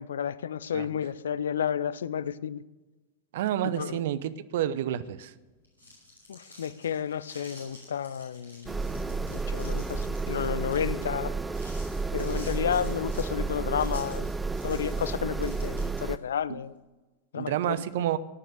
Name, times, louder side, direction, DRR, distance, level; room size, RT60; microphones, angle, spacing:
voice 1, 0.0-2.6 3.7-4.0 6.3-11.4 12.1-14.3 14.6-16.7 17.3-18.0, left 8 dB, 65° left, 0.5 m, -32 dB
voice 2, 3.3-5.3 16.5-16.6 17.3-18.2, right 11 dB, 55° right, 0.8 m, -29 dB
sound 1, 5.5-16.2, left 1 dB, 85° right, 7.0 m, -51 dB
sound 2, 8.7-16.2, right 3 dB, 10° right, 0.5 m, -31 dB
18.0 x 10.0 x 6.5 m
figure-of-eight pair, 90°, 0 cm